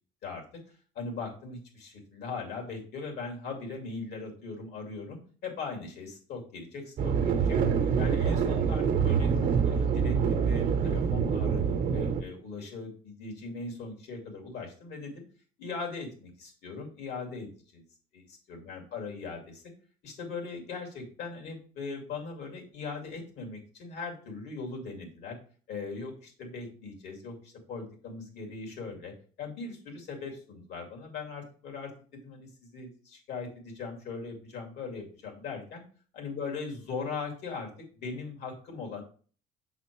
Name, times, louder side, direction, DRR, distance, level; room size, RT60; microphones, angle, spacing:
voice 1, 0.2-7.6 8.0-15.2 15.6-17.8 18.1-19.6 20.0-25.4 25.7-29.1 29.4-35.8 36.1-37.7 37.9-39.0, left 4 dB, 75° left, 1 dB, 2.3 m, -40 dB
sound 1, 7.0-12.2, right 6 dB, 55° right, 0.9 m, -26 dB
6.7 x 4.1 x 4.6 m, 0.42 s
cardioid pair, 110°, 17 cm